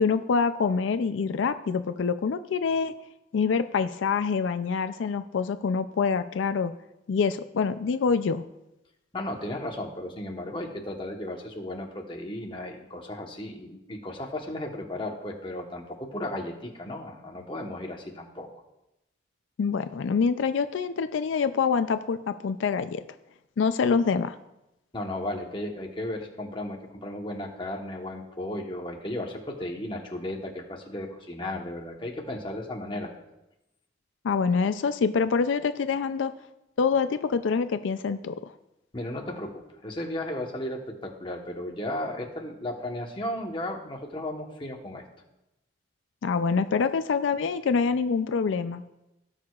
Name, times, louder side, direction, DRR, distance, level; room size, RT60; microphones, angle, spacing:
voice 1, 0.0-2.9 3.3-6.7 7.1-8.4 19.6-23.0 23.6-24.3 34.2-36.3 36.8-38.5 46.2-48.8, left 5 dB, 90° left, 11 dB, 0.4 m, -26 dB
voice 2, 9.1-18.5 24.9-33.1 38.9-45.0, left 1 dB, 25° left, 1 dB, 1.1 m, -35 dB
17.5 x 6.4 x 2.4 m, 0.91 s
head